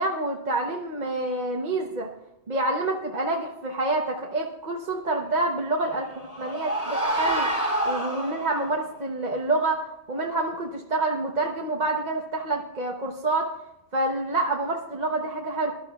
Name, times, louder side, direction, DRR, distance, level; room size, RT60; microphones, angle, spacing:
voice 1, 0.0-2.1 2.5-7.5 7.8-9.8 10.1-13.5 13.9-15.7, right 2 dB, 40° right, 0 dB, 1.0 m, -27 dB
sound 1, 5.8-8.8, right 1 dB, 15° left, 3.6 m, -28 dB
24.5 x 12.5 x 2.3 m, 0.89 s
omnidirectional pair, 1.2 m